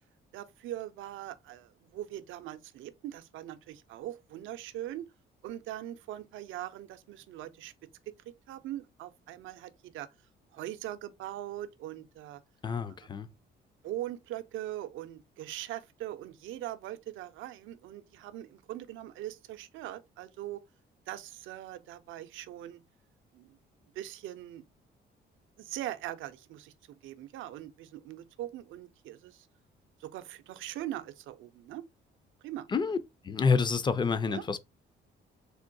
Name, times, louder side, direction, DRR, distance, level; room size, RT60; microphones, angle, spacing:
voice 1, 0.3-5.0 5.4-7.7 8.1-10.1 10.5-12.4 13.8-20.6 21.1-22.8 23.3-23.6 23.8-24.6 25.6-29.5 30.0-31.8 32.4-32.7 34.3-34.5, right 13 dB, 80° right, 0.4 m, -41 dB
voice 2, 12.6-13.3 32.7-33.0 33.2-34.6, left 5 dB, 25° left, 0.4 m, -28 dB
3.6 x 2.2 x 2.5 m
cardioid pair, 90°, 20 cm